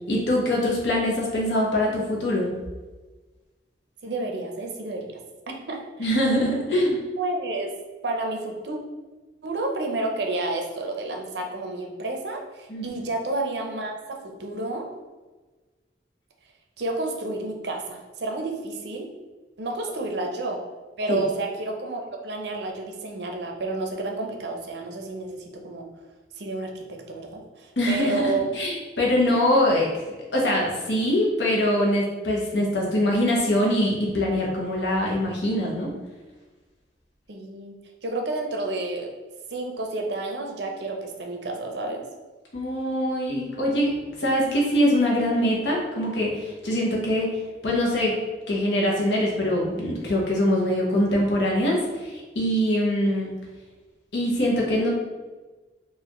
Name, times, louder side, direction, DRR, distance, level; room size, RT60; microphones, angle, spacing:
voice 1, 0.1-2.5 6.0-7.0 12.7-12.9 21.1-21.2 27.8-29.9 30.3-35.9 42.5-43.9 44.2-47.4 47.6-48.1 48.5-53.3 54.1-54.9, left 1 dB, 90° left, -3 dB, 1.0 m, -23 dB
voice 2, 4.0-5.2 5.5-6.1 6.5-6.6 7.2-7.7 8.0-8.8 9.4-14.9 16.8-19.1 19.6-20.6 21.0-25.9 26.4-28.5 37.3-37.7 38.0-39.1 39.5-42.0, right 2 dB, 75° right, 2 dB, 0.6 m, -30 dB
4.0 x 2.5 x 3.0 m, 1.3 s
head